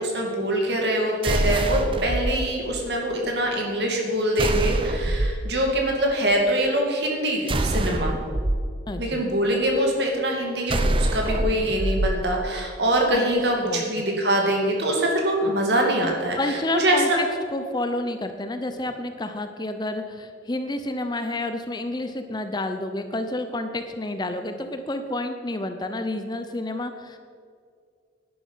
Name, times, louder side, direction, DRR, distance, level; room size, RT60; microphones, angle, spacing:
voice 1, 0.0-8.1 9.0-17.2, right 1 dB, 60° right, 1 dB, 2.3 m, -24 dB
sound 1, 1.2-2.3 4.4-5.4 7.5-8.6 10.7-12.1, right 1 dB, 30° right, 0.6 m, -24 dB
voice 2, 8.9-9.2 13.1-14.0 16.4-17.3 17.5-27.2, left 2 dB, 20° left, 8 dB, 0.6 m, -30 dB
11.5 x 10.0 x 5.6 m, 2.1 s
head